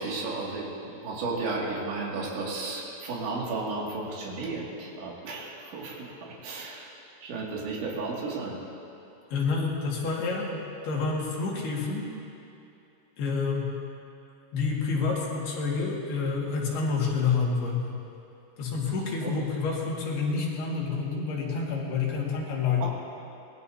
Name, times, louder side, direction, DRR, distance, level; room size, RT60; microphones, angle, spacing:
voice 1, 0.0-6.9 7.2-8.6 19.2-19.3 22.8-22.9, right 3 dB, 90° right, -4 dB, 4.8 m, -33 dB
voice 2, 9.3-12.1 13.2-13.7 14.5-18.0 18.6-22.9, left 4 dB, 65° left, -4 dB, 4.0 m, -28 dB
25.5 x 20.0 x 2.8 m, 2.7 s
omnidirectional pair, 5.1 m